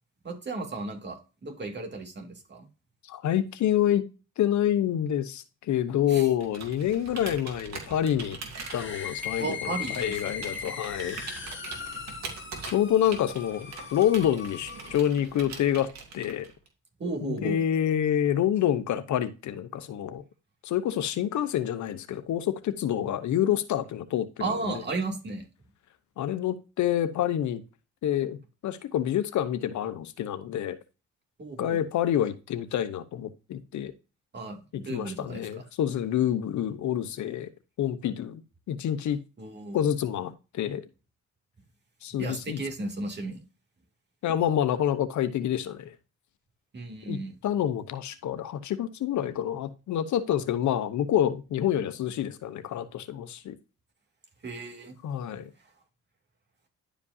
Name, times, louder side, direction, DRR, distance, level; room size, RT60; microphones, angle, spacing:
voice 1, 0.2-2.7 6.1-6.3 9.4-10.2 17.0-17.6 24.4-25.5 31.4-31.8 34.3-35.6 39.4-39.8 42.2-43.4 46.7-47.4 54.4-54.9 55.6-55.7, right 3 dB, 35° right, 2.7 m, -35 dB
voice 2, 3.1-4.1 4.4-8.4 8.7-9.5 10.0-11.2 12.6-16.5 17.2-20.2 20.6-24.4 26.2-27.6 28.0-28.4 28.6-30.8 31.6-33.9 34.9-37.5 37.8-38.4 38.7-39.2 39.7-40.8 42.0-42.6 44.2-45.9 47.1-47.2 47.4-53.5 55.0-55.5, left 10 dB, 70° left, 0.9 m, -27 dB
Computer keyboard, 6.4-16.7, right 4 dB, 60° right, 2.6 m, -42 dB
sound 1, 8.5-15.1, left 7 dB, 40° left, 2.1 m, -39 dB
11.0 x 5.1 x 2.7 m
cardioid pair, 90°, 30 cm